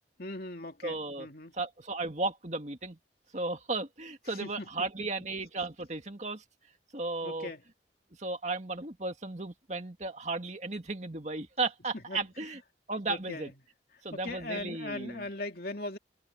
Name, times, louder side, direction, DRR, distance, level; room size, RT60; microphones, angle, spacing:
voice 1, 0.2-1.5 4.3-4.7 7.2-7.6 12.1-12.2 13.1-13.5 14.1-16.0, left 2 dB, 55° left, 3.1 m, -39 dB
voice 2, 0.8-1.3 1.5-3.0 3.3-6.4 6.9-7.5 8.2-12.6 12.9-13.5 14.0-15.3, right 3 dB, 40° right, 2.1 m, -35 dB
head